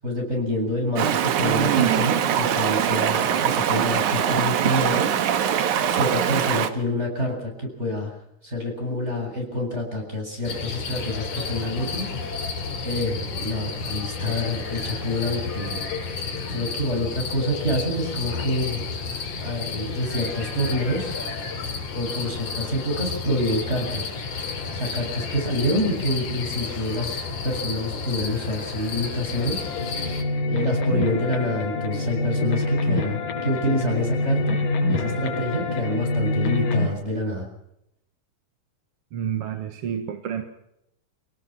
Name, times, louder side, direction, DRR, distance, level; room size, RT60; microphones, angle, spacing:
voice 1, 0.0-5.6 5.9-8.1 8.4-12.1 12.8-16.1 16.5-18.8 19.4-21.1 21.9-24.2 24.7-29.6 30.5-34.6 34.9-37.5, left 1 dB, 20° right, 2 dB, 7.6 m, -27 dB
Stream, 1.0-6.7, right 9 dB, 70° right, 2.7 m, -22 dB
sound 1, 10.5-30.2, left 5 dB, 65° left, 4.2 m, -31 dB
sound 2, 29.2-36.9, left 2 dB, 85° left, 6.1 m, -26 dB
voice 2, 39.1-40.4, right 8 dB, 50° right, 6 dB, 2.2 m, -29 dB
28.0 x 18.0 x 6.1 m, 0.80 s
omnidirectional pair, 3.8 m